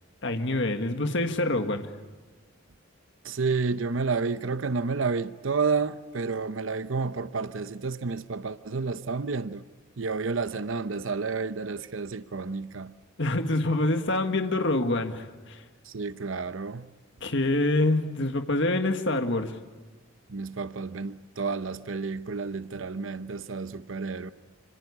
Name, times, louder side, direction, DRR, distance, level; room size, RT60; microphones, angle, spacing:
voice 1, 0.2-1.9 13.2-15.6 17.2-19.6, left 2 dB, 60° left, 1.7 m, -26 dB
voice 2, 3.2-9.6 10.0-12.9 15.8-16.9 20.3-24.3, right 4 dB, 70° right, 0.8 m, -30 dB
26.5 x 26.0 x 8.4 m
head